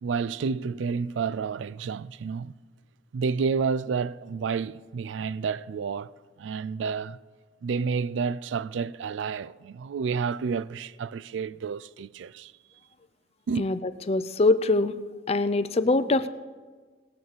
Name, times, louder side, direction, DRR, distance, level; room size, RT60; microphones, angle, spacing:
voice 1, 0.0-2.5 3.1-7.2 7.6-12.5 13.5-13.7, right 5 dB, 75° right, 0.3 m, -30 dB
voice 2, 13.6-14.9 15.3-16.3, left 2 dB, 35° left, 0.4 m, -23 dB
18.5 x 6.3 x 6.9 m
head